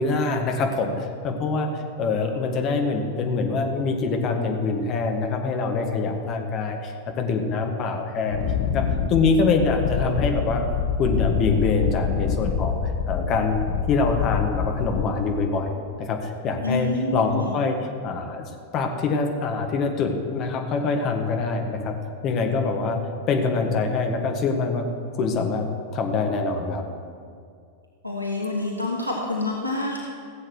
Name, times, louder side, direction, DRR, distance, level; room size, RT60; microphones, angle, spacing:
voice 1, 0.0-8.4 8.7-10.6 11.0-12.8 13.1-13.6 13.9-17.8 18.0-18.4 18.7-22.0 22.2-23.0 23.3-24.9 25.1-25.7 25.9-26.8, left 4 dB, 35° left, 3 dB, 1.7 m, -24 dB
Wind, 8.3-15.4, left 7 dB, 50° left, 1.0 m, -26 dB
voice 2, 16.6-17.5 28.0-30.0, left 2 dB, 85° right, -1 dB, 1.3 m, -27 dB
16.5 x 7.7 x 6.4 m, 2.3 s
figure-of-eight pair, 90°, 0 cm